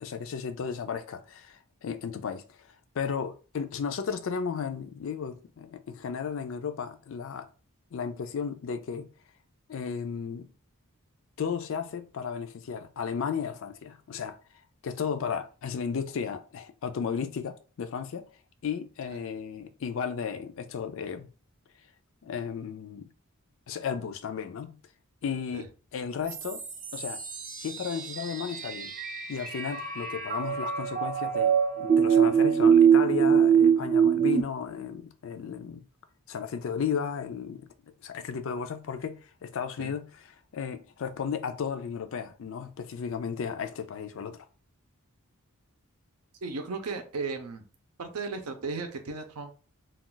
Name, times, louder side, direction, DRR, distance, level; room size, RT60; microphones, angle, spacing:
voice 1, 0.0-7.5 7.9-9.1 9.7-10.5 11.4-14.4 14.8-18.3 18.6-21.3 22.2-23.1 23.7-24.8 25.2-25.7 25.9-26.6 26.9-27.2 27.6-28.9 29.3-35.8 36.3-37.7 38.0-40.1 40.5-44.5, left 6 dB, 60° left, 0.4 m, -34 dB
sound 1, 26.3-34.4, right 7 dB, 35° right, 0.4 m, -24 dB
voice 2, 46.4-47.6 48.0-49.5, right 4 dB, 85° right, 0.6 m, -35 dB
2.4 x 2.3 x 3.8 m
head